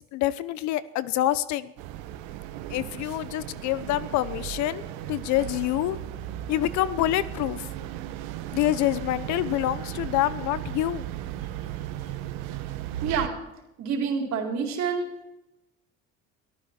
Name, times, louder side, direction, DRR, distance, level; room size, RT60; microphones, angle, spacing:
voice 1, 0.1-1.7 2.7-4.8 5.1-6.0 6.5-7.7 8.5-11.1, left 14 dB, 70° left, 16 dB, 0.9 m, -26 dB
sound 1, 1.8-13.3, right 12 dB, 85° right, 1.2 m, -36 dB
voice 2, 13.0-13.3 13.8-15.1, right 6 dB, 65° right, 2 dB, 4.1 m, -27 dB
23.0 x 13.5 x 4.4 m, 0.94 s
supercardioid pair, 90°, 30 cm